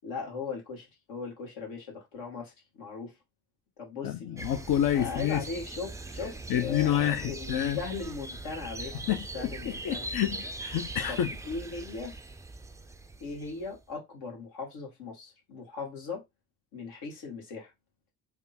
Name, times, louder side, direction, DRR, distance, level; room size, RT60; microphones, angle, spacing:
voice 1, 0.0-3.1 3.8-4.4 4.9-9.0 9.3-10.1 11.1-12.1 13.2-16.2 16.7-17.7, left 4 dB, 70° left, 2.0 m, -38 dB
voice 2, 4.0-5.4 6.5-7.8 9.1-9.2 9.4-11.3, left 11 dB, 45° left, 0.6 m, -28 dB
sound 1, 4.4-13.8, right 2 dB, 10° right, 0.3 m, -41 dB
3.5 x 2.3 x 4.1 m
hypercardioid pair, 45°, 49 cm